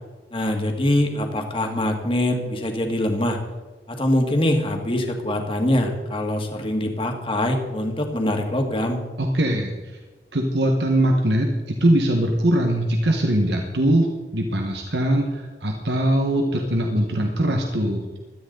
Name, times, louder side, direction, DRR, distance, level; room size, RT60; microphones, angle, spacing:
voice 1, 0.3-3.4 3.9-9.0, left 1 dB, 30° left, 3 dB, 1.9 m, -23 dB
voice 2, 9.2-9.7 10.3-18.2, right 1 dB, 75° right, 2 dB, 1.5 m, -21 dB
17.5 x 13.0 x 4.0 m, 1.3 s
head